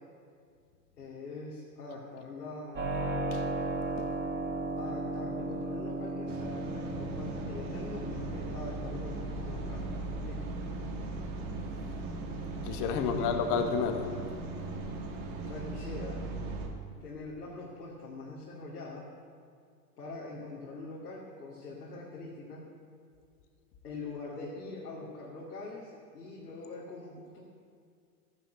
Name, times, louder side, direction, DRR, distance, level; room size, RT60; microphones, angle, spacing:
voice 1, 1.0-3.0 4.8-9.9 10.2-10.4 13.0-13.3 15.4-16.2 17.0-19.1 20.0-22.6 23.8-27.4, left 3 dB, 85° left, -5 dB, 2.7 m, -43 dB
Keyboard (musical), 2.7-15.5, right 2 dB, 20° right, 3.6 m, -38 dB
voice 2, 3.8-4.2 12.6-14.1, left 6 dB, 40° left, 6 dB, 1.7 m, -31 dB
sound 1, 6.3-16.7, right 3 dB, 50° right, 2.6 m, -38 dB
14.5 x 10.0 x 6.5 m, 2.2 s
hypercardioid pair, 105°, 48 cm